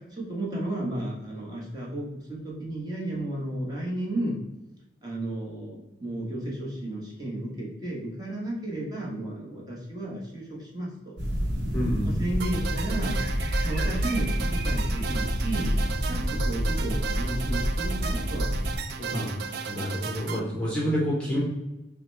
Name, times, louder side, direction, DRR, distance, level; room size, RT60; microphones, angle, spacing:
voice 1, 0.1-4.4 5.0-11.2 12.0-13.2 13.6-15.8 16.1-18.5 19.0-19.6, right 1 dB, 20° right, -4 dB, 1.1 m, -33 dB
sound 1, 11.2-18.8, equal, 85° right, 0.9 m, -28 dB
voice 2, 11.7-12.2 19.1-19.3 19.7-21.4, equal, 5° left, -5 dB, 0.8 m, -28 dB
sound 2, 12.4-20.4, right 6 dB, 60° right, 0.3 m, -35 dB
5.9 x 2.2 x 3.2 m, 1.0 s
head